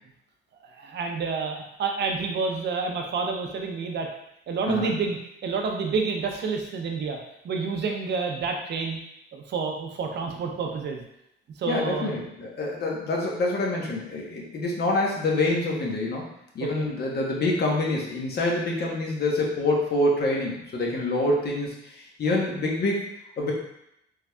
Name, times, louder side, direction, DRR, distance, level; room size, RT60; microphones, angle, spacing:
voice 1, 0.8-4.1 4.5-7.2 7.4-9.0 9.3-11.0 11.6-12.2 16.8-16.9, right 4 dB, 60° right, 2 dB, 0.6 m, -29 dB
voice 2, 11.7-16.3 16.5-23.0 23.4-23.5, left 2 dB, 55° left, -2 dB, 0.9 m, -26 dB
3.7 x 3.2 x 2.2 m, 0.78 s
cardioid pair, 90°, 20 cm